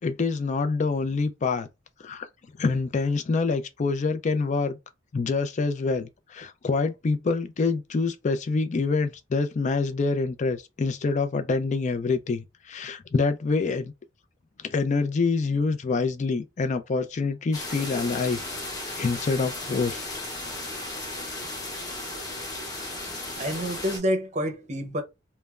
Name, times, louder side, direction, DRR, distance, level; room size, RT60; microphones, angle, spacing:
voice 1, 0.0-1.7 2.0-2.3 2.6-4.8 5.1-13.9 14.6-18.4 19.0-20.1, left 4 dB, 40° left, 0.4 m, -26 dB
sound 1, 17.5-24.0, left 2 dB, 20° left, 0.9 m, -35 dB
voice 2, 23.3-25.0, equal, 40° right, 0.6 m, -28 dB
3.2 x 2.0 x 2.3 m
head